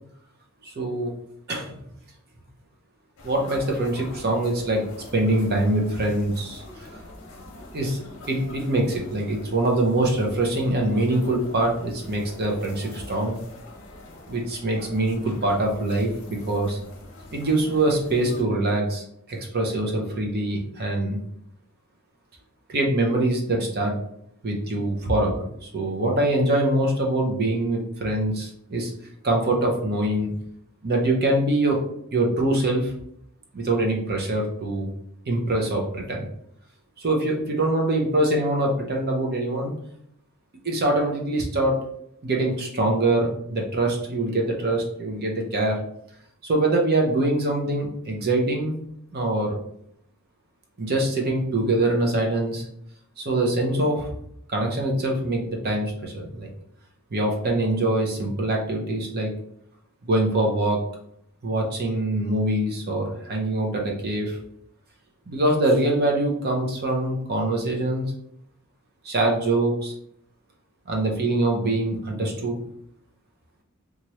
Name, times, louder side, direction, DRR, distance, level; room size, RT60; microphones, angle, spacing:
voice 1, 0.6-1.1 1.5-1.8 3.2-4.9 5.1-7.0 7.7-8.0 8.3-13.4 14.3-16.8 17.3-21.2 22.7-24.0 24.4-28.9 29.2-30.3 30.8-31.8 32.1-32.9 33.5-34.9 35.3-36.2 37.0-39.7 40.6-41.8 42.2-45.8 46.4-48.7 49.1-49.6 50.8-52.6 53.2-54.1 54.5-56.5 57.1-59.3 60.1-60.8 61.4-64.4 65.3-68.0 69.0-69.9 70.9-72.6, right 2 dB, 45° right, 0 dB, 0.6 m, -24 dB
sound 1, 3.2-18.4, left 2 dB, 65° left, 0.8 m, -43 dB
3.0 x 2.4 x 2.8 m, 0.71 s
head